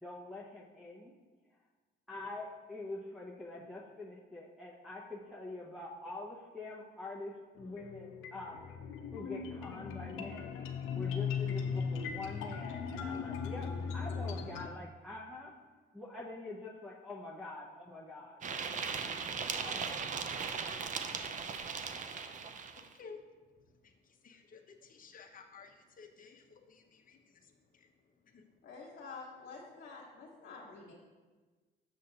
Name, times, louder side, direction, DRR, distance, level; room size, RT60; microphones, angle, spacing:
voice 1, 0.0-1.1 2.1-8.7 9.1-10.6 10.9-15.5 15.9-18.4 18.7-19.2 19.6-20.0, left 2 dB, ahead, -5 dB, 0.8 m, -45 dB
sound 1, 7.6-14.7, left 6 dB, 85° left, 0.5 m, -38 dB
sound 2, 18.4-22.9, right 5 dB, 40° right, 0.5 m, -38 dB
voice 2, 22.8-28.6, left 5 dB, 45° left, 3 dB, 0.8 m, -56 dB
voice 3, 28.6-30.9, left 4 dB, 60° left, -4 dB, 1.3 m, -48 dB
6.7 x 6.4 x 2.8 m, 1.3 s
cardioid pair, 90°, 20 cm